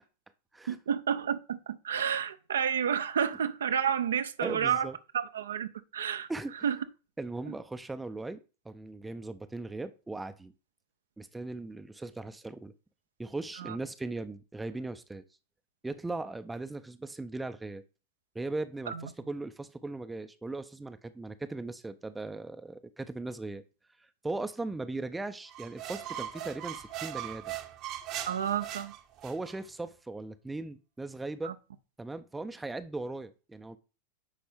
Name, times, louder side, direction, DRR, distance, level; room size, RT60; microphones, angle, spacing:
voice 1, 0.7-4.9 5.1-6.3 6.6-6.8 7.5-7.6 13.6-13.8 18.9-19.0 28.2-28.9 31.4-31.5, right 8 dB, 65° right, 0.5 m, -30 dB
voice 2, 4.4-5.0 6.3-6.5 7.2-8.4 8.7-10.5 11.2-12.7 13.2-15.2 15.8-17.8 18.3-23.6 24.2-27.6 29.2-31.6 32.0-33.8, right 2 dB, 10° right, 0.5 m, -38 dB
sound 1, 25.5-29.6, right 12 dB, 40° right, 0.8 m, -40 dB
10.0 x 4.3 x 3.5 m
figure-of-eight pair, 90°, 0 cm